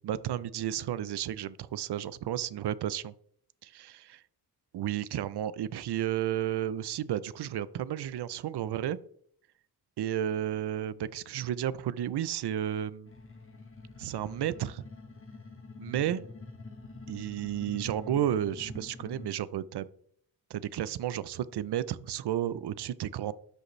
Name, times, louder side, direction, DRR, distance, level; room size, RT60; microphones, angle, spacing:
voice 1, 0.0-3.1 3.6-4.1 4.7-9.0 10.0-13.1 14.0-14.8 15.8-16.2 17.1-19.9 20.5-23.3, right 11 dB, 75° right, 17 dB, 0.6 m, -32 dB
sound 1, 13.1-19.3, left 3 dB, 30° left, 1.4 m, -46 dB
12.5 x 5.2 x 3.1 m, 0.64 s
cardioid pair, 80°, 40 cm